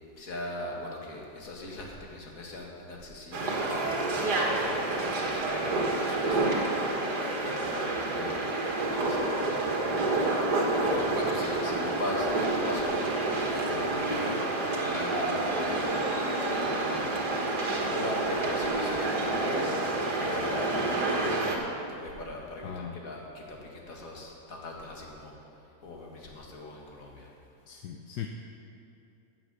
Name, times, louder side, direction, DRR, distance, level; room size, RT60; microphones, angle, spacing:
voice 1, 0.2-6.7 7.4-8.5 8.9-9.7 10.8-14.7 14.9-25.3 25.8-27.3, left 2 dB, 55° left, -1 dB, 2.2 m, -40 dB
sound 1, 3.3-21.6, right 2 dB, 70° right, 2.0 m, -28 dB
voice 2, 22.6-23.0 27.7-28.3, left 9 dB, 80° left, 3 dB, 1.3 m, -39 dB
14.5 x 7.7 x 6.8 m, 2.7 s
omnidirectional pair, 1.8 m